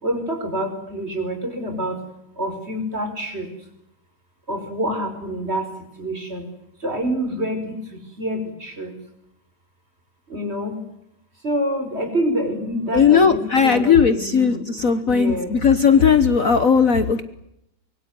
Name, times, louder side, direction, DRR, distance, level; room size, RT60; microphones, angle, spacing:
voice 1, 0.0-2.1 2.4-3.5 4.5-5.7 6.0-6.5 6.8-8.9 10.3-10.8 11.4-14.6 15.0-15.5, equal, 30° right, 6 dB, 5.3 m, -27 dB
voice 2, 12.9-17.2, left 6 dB, 50° left, 10 dB, 1.5 m, -17 dB
25.5 x 23.0 x 9.4 m, 0.83 s
omnidirectional pair, 2.1 m